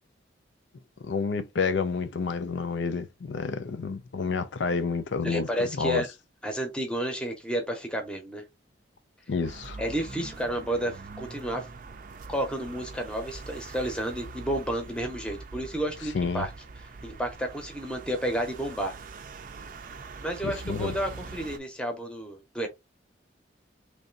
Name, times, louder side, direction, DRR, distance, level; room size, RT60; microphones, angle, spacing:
voice 1, 1.0-6.0 9.3-9.8 16.1-16.5 20.4-21.0, left 5 dB, 80° left, 0.5 m, -29 dB
voice 2, 5.2-6.1 6.4-8.4 9.8-11.7 12.3-16.5 16.8-18.9 20.2-22.7, right 1 dB, 5° left, 0.8 m, -31 dB
sound 1, 9.4-21.6, right 3 dB, 45° right, 0.4 m, -43 dB
3.3 x 2.6 x 3.9 m
head